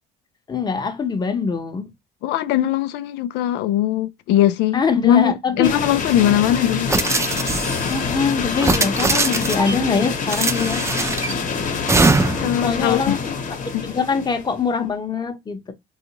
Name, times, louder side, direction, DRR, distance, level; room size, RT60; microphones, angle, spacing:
voice 1, 0.5-1.8 4.7-5.7 7.9-10.8 12.6-13.2 13.8-15.7, left 5 dB, 25° left, 0.7 m, -23 dB
voice 2, 2.2-6.9 12.4-13.2 13.7-13.9, left 12 dB, 90° left, 0.4 m, -20 dB
sound 1, 5.6-14.6, left 5 dB, 50° left, 0.9 m, -26 dB
sound 2, 6.9-7.9 8.6-9.7 10.3-11.3 11.9-12.5, right 3 dB, 15° right, 0.5 m, -21 dB
3.7 x 2.4 x 2.9 m
cardioid pair, 110°, 17 cm